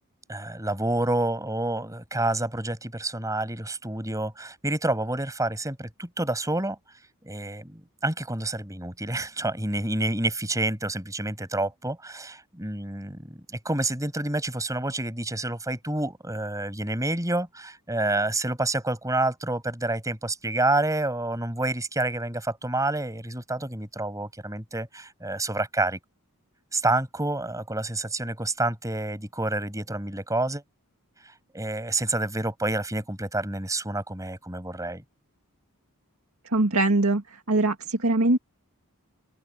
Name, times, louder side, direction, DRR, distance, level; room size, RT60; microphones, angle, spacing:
voice 1, 0.3-6.8 7.2-26.0 26.7-30.6 31.2-35.0, right 2 dB, 15° right, 7.8 m, -28 dB
voice 2, 36.5-37.2 37.5-38.4, right 2 dB, 70° right, 2.3 m, -22 dB
open air
head